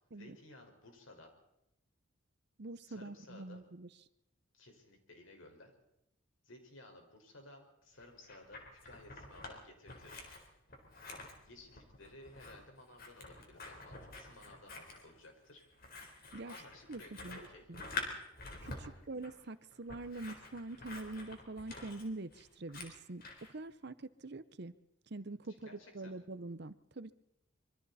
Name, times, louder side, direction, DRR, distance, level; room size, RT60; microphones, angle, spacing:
voice 1, 0.1-1.3 2.8-3.6 4.5-5.7 6.4-10.1 11.4-15.6 16.4-17.7 25.6-26.2, left 2 dB, 75° left, 3 dB, 5.2 m, -56 dB
voice 2, 2.6-3.9 16.3-16.5 16.9-17.4 17.7-17.8 18.6-24.7 25.1-27.1, right 2 dB, 55° right, 14 dB, 0.8 m, -45 dB
Scissors, 8.0-9.5 9.9-23.5, left 3 dB, 45° left, 4.2 m, -48 dB
26.0 x 23.5 x 4.2 m, 0.82 s
head